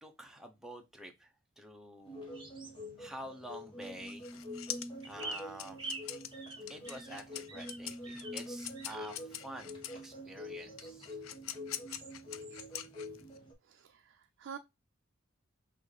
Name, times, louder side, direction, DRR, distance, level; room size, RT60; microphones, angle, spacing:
voice 1, 0.0-2.4 3.0-4.3 5.0-5.8 6.7-11.2, right 1 dB, ahead, 0.7 m, -48 dB
sound 1, 2.0-13.5, left 1 dB, 25° left, 1.4 m, -46 dB
sound 2, 2.3-2.9 5.0-8.4 8.7-9.2 9.9-11.1 11.9-12.1 12.4-12.7, right 3 dB, 25° right, 1.1 m, -47 dB
sound 3, 3.8-10.0 10.8-13.4, left 11 dB, 85° left, 0.5 m, -44 dB
voice 2, 13.6-14.6, right 7 dB, 60° right, 0.4 m, -48 dB
6.0 x 2.6 x 3.3 m
head